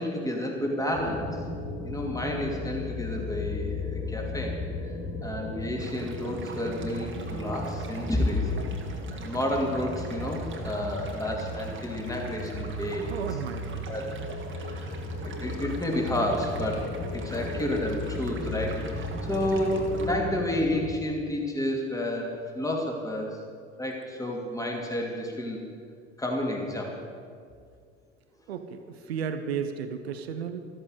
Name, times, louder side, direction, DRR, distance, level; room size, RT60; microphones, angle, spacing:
voice 1, 0.0-1.4 1.8-4.6 5.2-8.5 9.1-13.1 13.9-14.1 14.5-14.9 15.2-23.4 23.8-25.6 26.2-27.0, left 1 dB, 10° left, 0 dB, 2.8 m, -30 dB
sound 1, 0.9-20.8, left 2 dB, 80° left, 3.1 m, -35 dB
sound 2, 5.8-20.1, right 4 dB, 35° right, 1.9 m, -46 dB
voice 2, 13.1-13.9 28.5-30.6, right 7 dB, 70° right, 9 dB, 0.9 m, -34 dB
13.5 x 13.5 x 4.9 m, 2.2 s
figure-of-eight pair, 60°, 32 cm